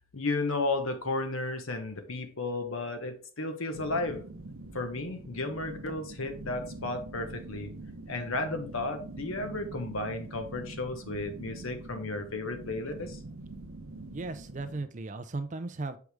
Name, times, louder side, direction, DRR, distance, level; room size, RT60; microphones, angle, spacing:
voice 1, 0.1-4.3 4.7-7.7 8.1-13.2, left 2 dB, 75° left, 7 dB, 1.1 m, -33 dB
sound 1, 3.7-14.8, right 2 dB, 75° right, 0.8 m, -44 dB
voice 2, 14.1-16.0, right 3 dB, 35° right, 10 dB, 0.5 m, -36 dB
6.4 x 4.7 x 3.5 m, 0.41 s
head